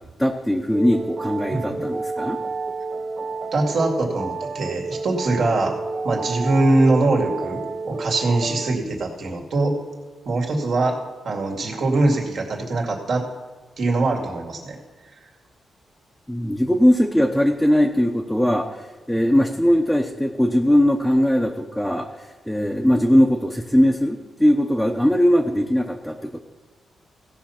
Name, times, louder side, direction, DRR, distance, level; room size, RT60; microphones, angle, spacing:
voice 1, 0.0-2.4 16.3-26.4, equal, ahead, 1 dB, 0.8 m, -20 dB
sound 1, 0.7-8.8, right 3 dB, 40° right, 0.6 m, -30 dB
voice 2, 3.5-5.7 6.0-9.8 10.2-11.0 11.2-13.2 13.8-14.8, right 2 dB, 65° right, 1 dB, 2.4 m, -22 dB
16.5 x 5.7 x 5.8 m, 1.4 s
cardioid pair, 110°, 0 cm